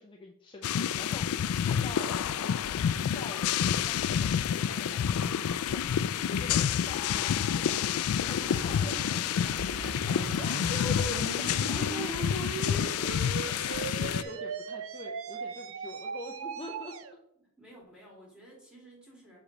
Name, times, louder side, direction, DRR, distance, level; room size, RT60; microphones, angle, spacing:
voice 1, 0.0-2.5 2.9-9.0 9.9-13.1 13.4-16.9, left 2 dB, 20° left, 0 dB, 0.6 m, -44 dB
sound 1, 0.6-14.2, left 8 dB, 75° left, 0.3 m, -29 dB
voice 2, 8.2-10.3 17.4-19.4, right 1 dB, 5° right, -4 dB, 2.1 m, -50 dB
sound 2, 9.3-17.1, right 5 dB, 65° right, 0.5 m, -39 dB
7.0 x 4.9 x 3.9 m, 0.78 s
head